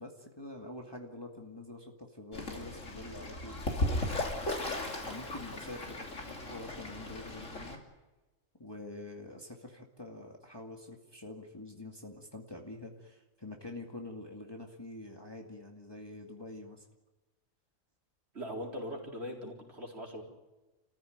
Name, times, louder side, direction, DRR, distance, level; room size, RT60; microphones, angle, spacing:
voice 1, 0.0-4.1 5.0-7.8 8.6-16.9, left 2 dB, 20° left, 1 dB, 2.2 m, -46 dB
Fowl / Bird, 2.3-7.8, left 1 dB, 65° left, 3.4 m, -36 dB
voice 2, 18.3-20.2, equal, 50° right, -1 dB, 4.5 m, -40 dB
29.0 x 15.0 x 9.3 m, 1.1 s
omnidirectional pair, 1.4 m